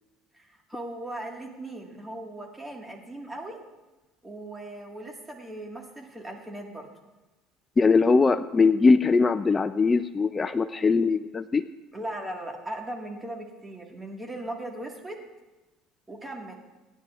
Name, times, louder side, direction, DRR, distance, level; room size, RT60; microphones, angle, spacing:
voice 1, 0.3-3.6 4.2-6.9 11.9-15.2 16.1-16.5, right 1 dB, 10° right, 1 dB, 1.7 m, -38 dB
voice 2, 7.8-11.6, left 4 dB, 25° left, 11 dB, 0.4 m, -21 dB
25.0 x 10.0 x 2.4 m, 1.1 s
supercardioid pair, 105°, 0 cm